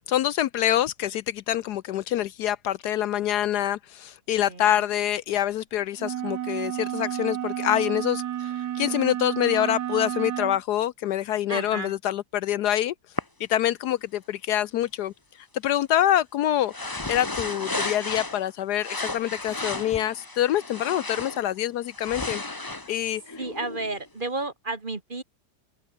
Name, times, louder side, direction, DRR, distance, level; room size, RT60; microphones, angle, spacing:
voice 1, 0.1-12.9 13.5-15.1 15.6-22.4 22.9-23.3, left 12 dB, 70° left, 1.1 m, -26 dB
voice 2, 4.5-4.8 11.5-11.9 23.4-25.2, right 3 dB, 30° right, 1.8 m, -32 dB
sound 1, 6.0-10.6, right 11 dB, 70° right, 1.4 m, -31 dB
sound 2, 13.2-13.3 16.7-18.5 18.8-21.4 21.9-24.1, left 2 dB, 15° left, 1.1 m, -33 dB
open air
omnidirectional pair, 1.9 m